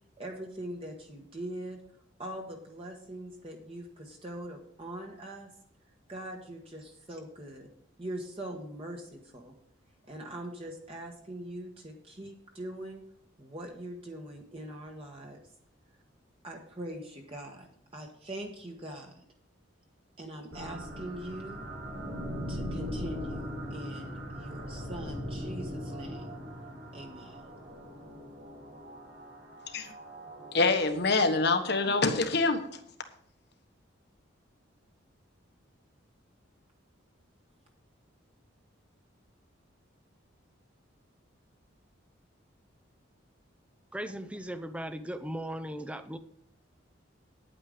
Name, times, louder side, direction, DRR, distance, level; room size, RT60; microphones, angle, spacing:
voice 1, 0.2-1.8 2.2-5.5 6.1-7.7 8.0-9.5 10.1-13.0 13.4-15.4 16.4-19.2 20.2-21.6 22.5-26.3 26.9-27.4 28.7-28.8, right 1 dB, 30° right, 1 dB, 1.3 m, -42 dB
sound 1, 20.5-32.5, equal, 75° right, 3.9 m, -40 dB
voice 2, 30.5-32.7, left 3 dB, 55° left, 7 dB, 1.4 m, -25 dB
voice 3, 43.9-46.2, right 1 dB, 5° right, 10 dB, 0.6 m, -37 dB
9.8 x 9.0 x 5.0 m, 0.68 s
head